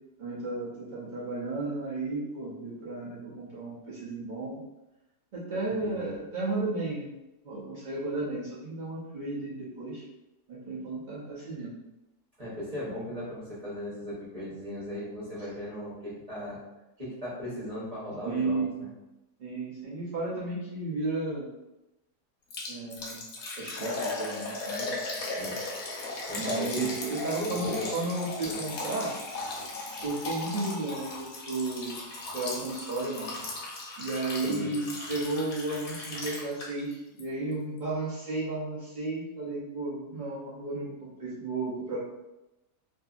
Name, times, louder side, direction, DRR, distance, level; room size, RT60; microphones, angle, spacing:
voice 1, 0.2-4.6 5.3-7.2 7.4-10.0 10.5-11.8 18.2-18.8 19.4-21.5 22.7-23.2 23.6-25.0 26.3-29.1 30.0-32.0 32.3-33.3 34.0-42.0, right 2 dB, 90° right, -7 dB, 0.4 m, -33 dB
voice 2, 5.8-6.2 12.4-16.6 17.0-18.9 25.3-25.5 26.3-26.9 27.4-27.9 28.4-28.6 34.4-34.7, equal, 30° right, -9 dB, 0.8 m, -37 dB
Liquid, 22.5-36.9 37.2-37.3 37.8-37.9, left 2 dB, 65° left, 1.0 m, -37 dB
2.7 x 2.5 x 2.4 m, 0.95 s
omnidirectional pair, 1.8 m